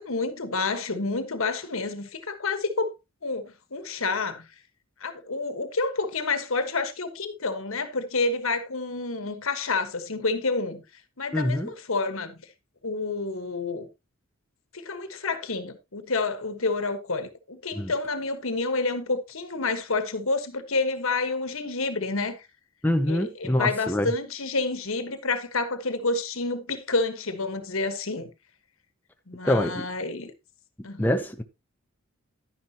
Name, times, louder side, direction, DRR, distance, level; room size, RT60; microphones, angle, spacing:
voice 1, 0.0-2.9 3.2-4.5 5.0-10.8 11.2-12.4 12.8-13.9 14.7-22.4 23.1-28.3 29.3-30.3 30.8-31.2, left 3 dB, 70° left, 1.5 m, -29 dB
voice 2, 11.3-11.7 17.7-17.9 22.8-24.1 29.4-29.8 30.8-31.4, left 1 dB, 10° left, 0.7 m, -25 dB
11.0 x 10.0 x 2.9 m
head